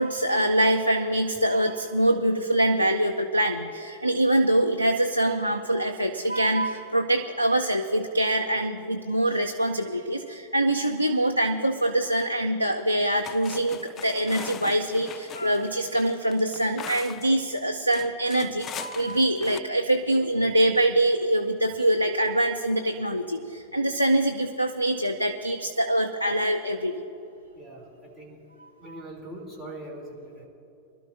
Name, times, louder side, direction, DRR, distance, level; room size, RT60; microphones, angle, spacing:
voice 1, 0.0-27.0, right 1 dB, 90° left, 7 dB, 0.5 m, -24 dB
sound 1, 12.8-12.9 13.2-17.4 17.9-19.6, left 9 dB, 30° left, 0.4 m, -41 dB
voice 2, 27.5-28.4 28.8-30.5, right 1 dB, 5° left, -2 dB, 2.9 m, -42 dB
24.0 x 12.0 x 2.6 m, 2.8 s
figure-of-eight pair, 90°, 0 cm